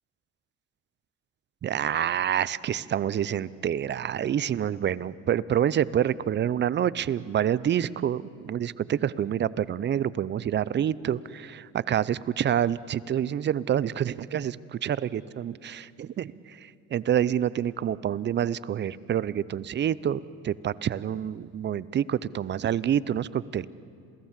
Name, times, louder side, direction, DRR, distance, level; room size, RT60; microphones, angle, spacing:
voice 1, 1.6-16.6 16.9-23.7, right 10 dB, 35° right, 19 dB, 0.6 m, -27 dB
27.5 x 18.0 x 7.4 m, 2.4 s
supercardioid pair, 90°, 31 cm